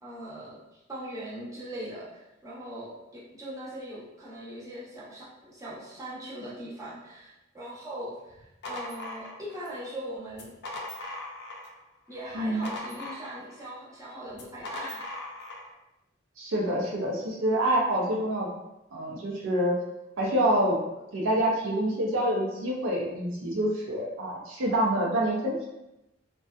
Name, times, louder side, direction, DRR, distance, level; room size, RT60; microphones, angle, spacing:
voice 1, 0.0-10.5 12.1-15.0, right 1 dB, 15° right, -8 dB, 0.7 m, -40 dB
sound 1, 8.3-9.8 10.3-11.8 12.1-13.6 14.3-15.7, left 2 dB, 60° left, 0.4 m, -39 dB
voice 2, 16.4-18.5 18.9-19.8 20.2-20.8 21.1-25.7, right 1 dB, 80° right, -2 dB, 0.5 m, -26 dB
2.6 x 2.2 x 2.3 m, 0.91 s
head